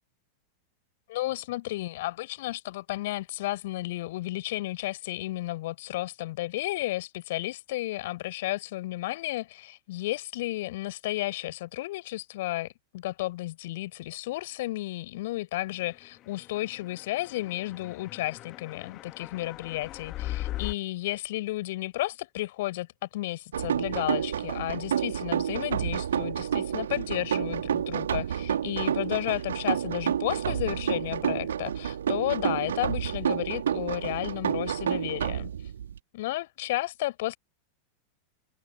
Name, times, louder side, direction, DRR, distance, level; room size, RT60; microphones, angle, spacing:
voice 1, 1.1-12.7 12.9-35.5 36.1-37.4, left 17 dB, 55° left, 4.5 m, -33 dB
sound 1, 16.3-20.7, left 15 dB, 35° left, 1.6 m, -39 dB
sound 2, 23.5-36.0, right 9 dB, 65° right, 2.5 m, -29 dB
figure-of-eight pair, 90°, 0 cm